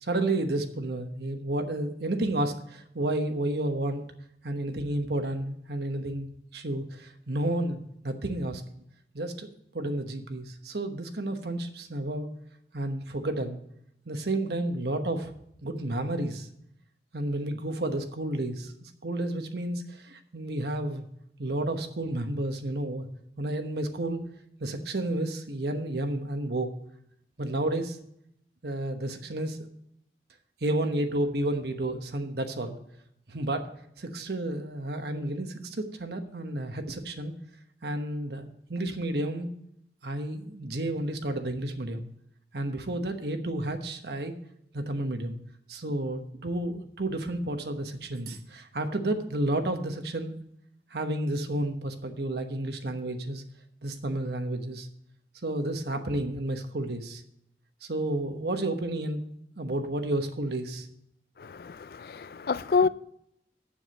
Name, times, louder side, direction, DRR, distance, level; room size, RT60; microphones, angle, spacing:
voice 1, 0.0-4.0 4.4-6.3 6.5-8.6 9.1-9.5 9.7-12.3 12.7-13.6 14.1-15.3 15.6-16.5 17.1-21.1 21.4-23.1 23.4-24.2 24.6-26.7 27.4-28.0 28.6-29.6 30.6-32.8 33.3-33.7 34.0-37.3 37.8-39.5 40.0-42.1 42.5-44.4 44.7-45.4 45.7-50.3 50.9-53.4 53.8-54.9 55.4-57.2 57.8-59.2 59.6-60.9, right 1 dB, 70° right, 1.1 m, -31 dB
voice 2, 61.4-62.9, left 5 dB, 55° left, 0.4 m, -27 dB
7.1 x 7.1 x 7.5 m
head